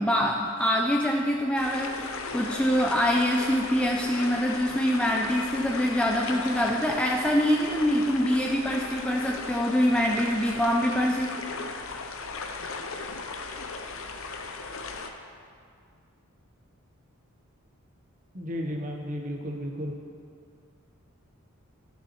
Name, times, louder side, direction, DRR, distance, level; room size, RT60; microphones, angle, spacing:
voice 1, 0.0-11.3, equal, 5° left, 0 dB, 0.3 m, -25 dB
sound 1, 1.6-15.1, left 4 dB, 65° left, 0.6 m, -37 dB
voice 2, 18.3-19.9, equal, 35° right, 1 dB, 0.9 m, -33 dB
13.5 x 6.8 x 3.1 m, 2.2 s
head